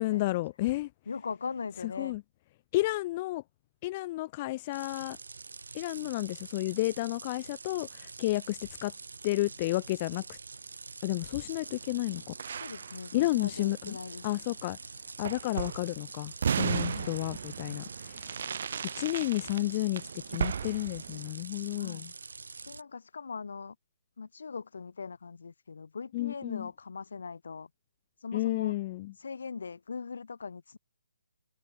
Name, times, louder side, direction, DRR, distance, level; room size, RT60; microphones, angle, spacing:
voice 1, 0.0-0.9 1.8-2.2 2.7-3.4 3.8-5.2 5.7-8.9 9.2-10.4 11.0-12.3 13.1-14.0 14.2-14.8 15.2-18.5 18.9-22.1 26.1-26.7 28.3-29.1, left 18 dB, 20° left, 0.3 m, -31 dB
voice 2, 1.1-2.2 12.6-14.2 16.9-17.2 21.7-22.1 22.6-23.7 24.2-27.7 28.2-28.8 29.2-30.8, left 5 dB, 65° left, 1.1 m, -40 dB
sound 1, 4.7-22.8, right 4 dB, 90° right, 1.3 m, -46 dB
sound 2, 9.3-20.2, right 4 dB, 70° right, 8.0 m, -62 dB
sound 3, 11.7-14.0 14.3-14.4 15.2-15.9 16.4-21.3, right 7 dB, 45° right, 2.0 m, -35 dB
hypercardioid pair, 175°, 0 cm